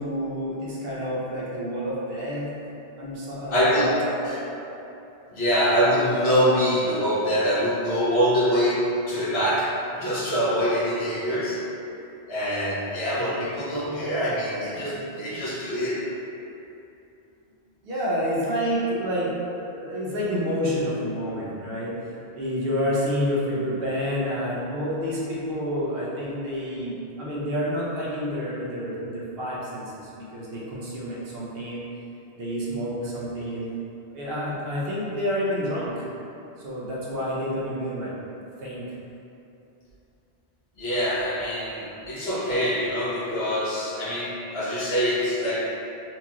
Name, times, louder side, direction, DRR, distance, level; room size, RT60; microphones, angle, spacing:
voice 1, 0.0-2.5 3.0-4.0 4.2-4.4 17.8-21.9 22.3-31.8 32.3-33.7 34.1-36.0 36.6-38.1 38.6-38.9, equal, 70° right, -6 dB, 1.0 m, -29 dB
voice 2, 3.5-3.9 4.2-4.4 5.3-9.7 10.0-11.6 12.3-16.0 40.8-45.7, equal, 80° left, -8 dB, 1.2 m, -24 dB
4.5 x 2.4 x 2.8 m, 2.8 s
omnidirectional pair, 1.1 m